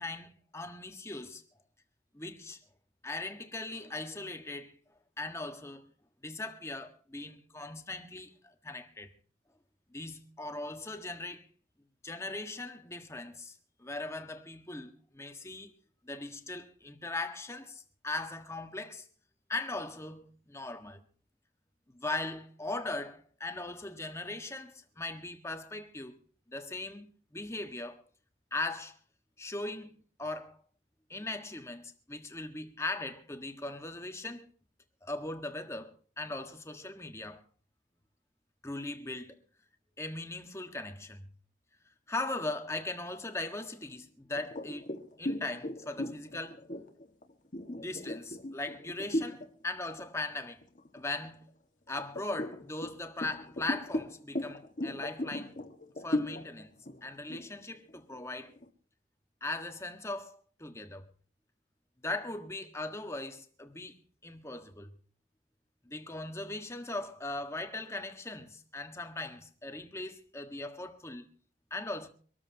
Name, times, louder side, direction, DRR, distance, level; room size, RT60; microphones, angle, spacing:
voice 1, 0.0-1.4 2.1-2.6 3.0-4.8 5.2-5.9 6.2-9.1 9.9-11.5 12.0-15.7 16.0-19.1 19.5-21.0 21.9-26.2 26.5-28.0 28.5-29.0 29.4-30.6 31.1-34.5 35.0-37.4 38.6-39.4 40.0-41.3 42.1-46.6 47.7-50.7 50.9-51.4 51.9-55.6 56.0-56.7 57.0-58.5 59.4-61.1 62.0-64.9 65.8-71.3 71.7-72.1, left 2 dB, 15° left, 1.5 m, -39 dB
sound 1, 44.4-49.5 49.9-50.2 50.6-51.4 52.0-58.7, left 1 dB, 45° left, 1.7 m, -37 dB
25.0 x 13.5 x 2.9 m
head